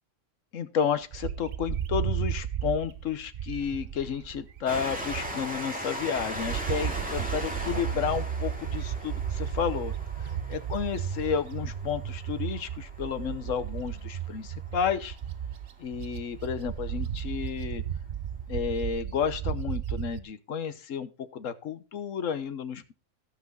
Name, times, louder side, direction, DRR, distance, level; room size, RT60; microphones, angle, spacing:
voice 1, 0.5-9.9 10.2-15.2 15.8-17.8 18.5-22.9, left 7 dB, 75° left, 13 dB, 1.3 m, -32 dB
Bird, 1.1-5.6 6.0-20.2, right 9 dB, 55° right, 0.8 m, -34 dB
Train, 4.7-15.8 16.6-16.7 16.9-17.0, equal, 5° right, 2.6 m, -39 dB
18.0 x 6.1 x 3.9 m, 0.30 s
omnidirectional pair, 1.3 m